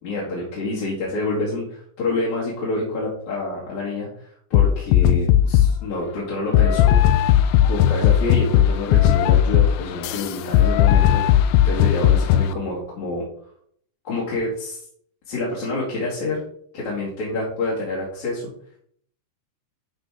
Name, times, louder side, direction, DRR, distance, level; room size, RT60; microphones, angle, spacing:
voice 1, 0.0-7.2 7.6-13.2 14.0-14.8 15.3-16.4 16.7-18.5, left 2 dB, 65° left, -7 dB, 3.5 m, -27 dB
sound 1, 4.5-5.8 6.5-12.5, left 11 dB, 80° left, 1.6 m, -17 dB
12.0 x 5.2 x 3.6 m, 0.63 s
omnidirectional pair, 3.6 m